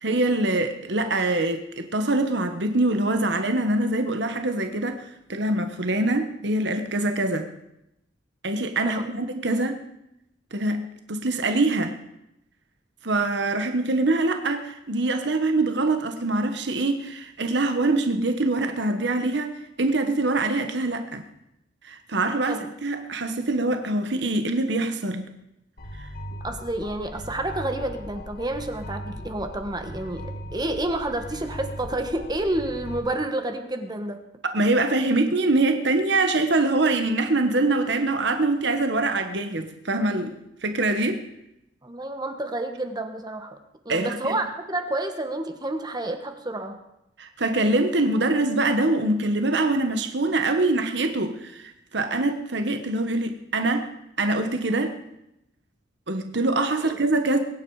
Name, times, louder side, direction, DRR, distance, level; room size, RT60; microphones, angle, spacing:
voice 1, 0.0-7.5 8.4-9.8 10.5-12.0 13.0-21.2 21.8-25.3 26.0-26.1 34.5-41.2 43.9-44.4 47.2-53.9 54.2-55.0 56.1-57.4, right 2 dB, 65° right, 7 dB, 1.3 m, -24 dB
sound 1, 25.8-33.0, equal, 55° left, 1.7 m, -38 dB
voice 2, 26.4-34.2 41.8-43.6 43.8-46.8 56.8-57.0, right 1 dB, 20° right, 6 dB, 1.4 m, -29 dB
22.0 x 10.5 x 4.9 m, 0.84 s
head